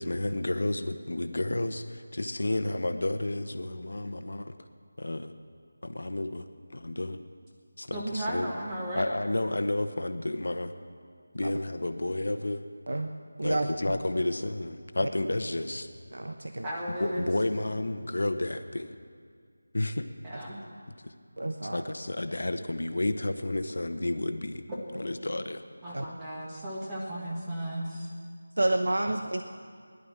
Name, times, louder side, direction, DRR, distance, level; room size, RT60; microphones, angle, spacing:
voice 1, 0.0-4.5 5.0-5.3 5.8-7.2 7.8-8.5 8.9-10.7 11.3-12.6 13.4-15.9 17.0-19.0 19.7-20.0 21.0-21.1 21.6-24.6 24.9-25.6, left 1 dB, 75° left, 8 dB, 1.1 m, -31 dB
voice 2, 7.9-9.0 16.6-17.3 20.2-20.7 24.7-24.8 25.8-28.1, right 1 dB, 10° right, -4 dB, 1.6 m, -35 dB
voice 3, 16.1-16.7 21.4-21.8 25.9-26.1 28.6-29.4, right 1 dB, 80° right, 6 dB, 0.9 m, -29 dB
16.5 x 11.5 x 7.3 m, 2.1 s
figure-of-eight pair, 175°, 0 cm